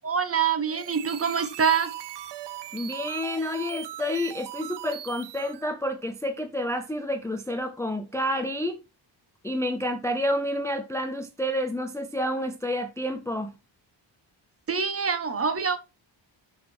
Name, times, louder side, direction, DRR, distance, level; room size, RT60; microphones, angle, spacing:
voice 1, 0.0-1.9 14.7-15.8, right 6 dB, 30° right, 1.0 m, -25 dB
sound 1, 0.6-5.7, right 12 dB, 60° right, 0.7 m, -40 dB
voice 2, 2.7-8.8 9.4-13.5, equal, 5° left, 0.5 m, -29 dB
6.4 x 6.3 x 4.4 m
wide cardioid pair, 170°, 47 cm